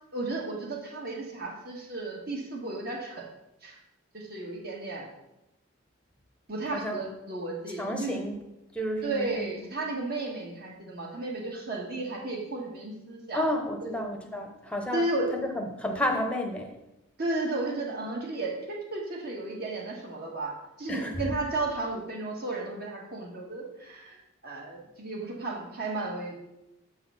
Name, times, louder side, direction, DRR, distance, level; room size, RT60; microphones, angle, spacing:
voice 1, 0.1-3.2 3.6-3.8 4.1-5.1 6.5-8.2 9.0-13.5 13.8-14.0 14.9-15.3 17.2-24.2 24.4-26.3, right 2 dB, 50° right, -1 dB, 1.5 m, -33 dB
voice 2, 6.7-7.1 7.8-8.3 8.7-9.7 13.3-15.0 15.3-16.7 20.9-21.1, left 1 dB, 5° left, 3 dB, 0.8 m, -31 dB
7.3 x 4.0 x 5.7 m, 0.91 s
head